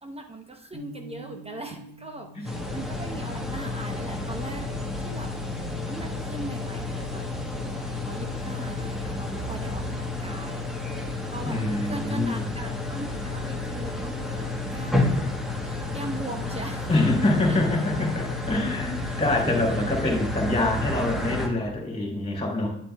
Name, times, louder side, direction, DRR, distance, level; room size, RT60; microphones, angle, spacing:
voice 1, 0.0-4.7 5.0-5.3 5.6-7.2 7.8-10.7 11.3-11.6 11.9-15.1 15.6-16.9 17.5-17.6 19.0-20.2, right 2 dB, 20° right, 4 dB, 0.8 m, -39 dB
sound 1, 0.7-6.8, right 1 dB, 55° right, 1.9 m, -49 dB
sound 2, 2.4-21.5, left 2 dB, ahead, 1.4 m, -31 dB
voice 2, 11.4-12.4 16.9-22.7, left 2 dB, 20° left, -2 dB, 3.3 m, -25 dB
9.4 x 7.8 x 2.3 m, 0.77 s
cardioid pair, 90°, 30 cm